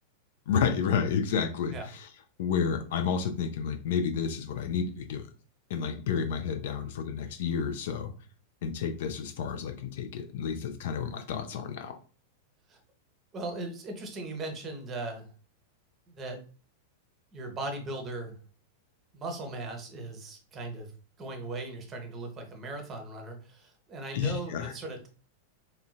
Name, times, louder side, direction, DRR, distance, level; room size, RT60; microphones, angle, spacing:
voice 1, 0.5-2.1 2.4-5.3 5.7-8.1 8.6-12.0 24.1-24.7, left 6 dB, 55° left, 7 dB, 0.4 m, -30 dB
voice 2, 13.3-15.3 16.1-16.4 17.3-18.4 19.1-20.9 21.2-25.1, right 2 dB, 25° right, 4 dB, 0.8 m, -38 dB
3.7 x 2.1 x 2.3 m, 0.38 s
figure-of-eight pair, 90°, 0 cm